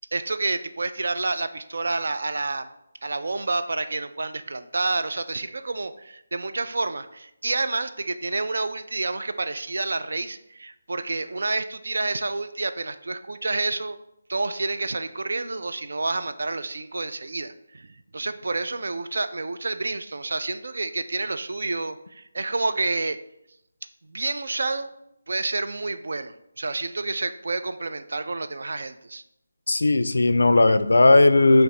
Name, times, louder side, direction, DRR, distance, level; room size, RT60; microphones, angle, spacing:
voice 1, 0.1-2.7 3.0-14.0 14.3-17.9 18.1-23.2 24.1-24.9 25.3-29.2, right 3 dB, 65° right, 11 dB, 0.3 m, -29 dB
voice 2, 29.7-31.6, left 2 dB, 80° left, 12 dB, 0.3 m, -17 dB
4.7 x 2.9 x 3.1 m, 0.81 s
figure-of-eight pair, 170°, 0 cm